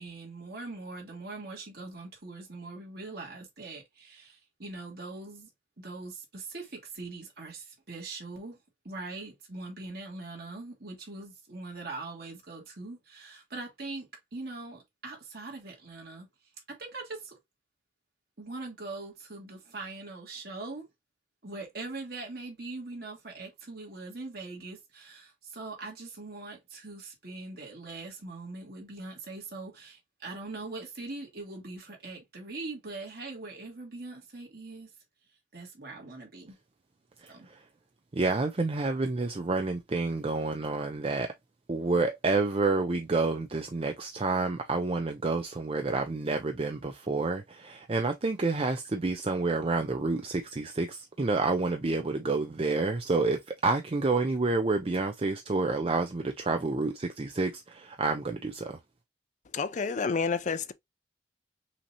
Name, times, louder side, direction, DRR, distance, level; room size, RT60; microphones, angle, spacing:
voice 1, 0.0-5.5 5.8-8.6 8.8-16.3 16.7-17.4 18.4-20.9 21.4-34.9 35.5-36.6 37.3-37.5, right 3 dB, 60° right, 2.2 m, -42 dB
voice 2, 38.1-41.3 41.7-58.7, right 3 dB, 35° right, 0.5 m, -29 dB
voice 3, 59.5-60.7, left 5 dB, 45° left, 0.5 m, -29 dB
5.7 x 2.8 x 2.8 m
head